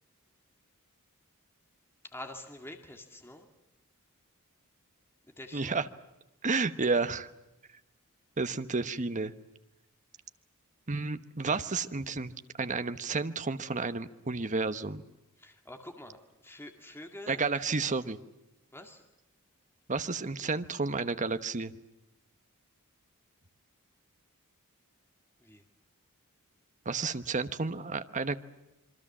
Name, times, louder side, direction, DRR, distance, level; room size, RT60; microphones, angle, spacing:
voice 1, 2.0-3.5 5.4-5.8 15.4-17.4 18.7-19.0 25.4-25.6, left 1 dB, 10° left, 4 dB, 2.2 m, -46 dB
voice 2, 5.5-5.9 6.4-7.3 8.4-9.3 10.9-12.3 12.6-15.0 17.3-18.2 19.9-21.7 26.8-28.4, right 4 dB, 35° right, 11 dB, 1.1 m, -31 dB
26.5 x 24.0 x 7.4 m, 0.96 s
head